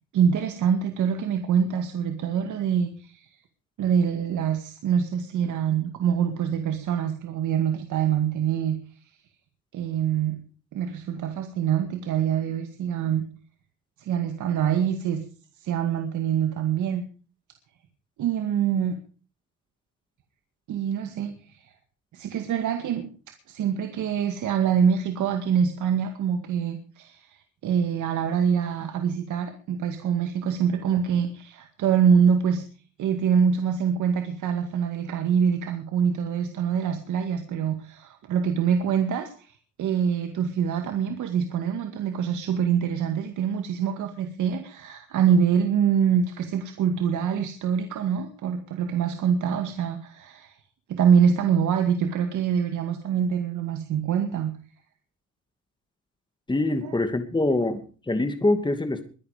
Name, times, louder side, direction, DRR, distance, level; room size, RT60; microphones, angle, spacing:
voice 1, 0.1-3.3 3.8-8.8 9.7-10.4 10.7-13.2 14.0-15.2 15.6-17.0 18.2-19.0 20.7-21.7 22.1-23.1 23.5-32.6 33.0-50.6 50.9-54.5 56.8-57.0, right 7 dB, 75° right, 6 dB, 2.1 m, -25 dB
voice 2, 56.5-59.0, left 2 dB, 15° left, 8 dB, 2.4 m, -24 dB
22.0 x 10.5 x 5.1 m, 0.38 s
cardioid pair, 90°, 30 cm